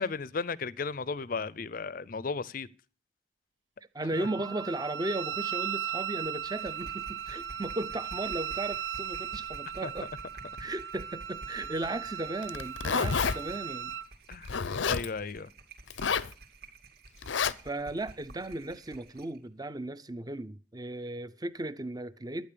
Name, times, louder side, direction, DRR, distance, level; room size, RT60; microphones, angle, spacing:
voice 1, 0.0-2.7 4.2-4.3 9.8-9.9 14.3-14.5 14.9-15.5, left 4 dB, 50° left, 0.5 m, -34 dB
voice 2, 3.9-10.1 10.6-14.0 17.6-22.5, right 2 dB, 20° right, 0.6 m, -36 dB
Wind instrument woodwind instrument, 4.1-14.1, right 9 dB, 75° right, 0.7 m, -37 dB
sound 1, 6.0-19.4, right 2 dB, 55° right, 2.5 m, -51 dB
Zipper (clothing), 12.4-13.4 14.5-15.1 15.9-16.3 17.2-17.5, left 6 dB, 85° left, 0.7 m, -29 dB
12.0 x 9.2 x 6.8 m
head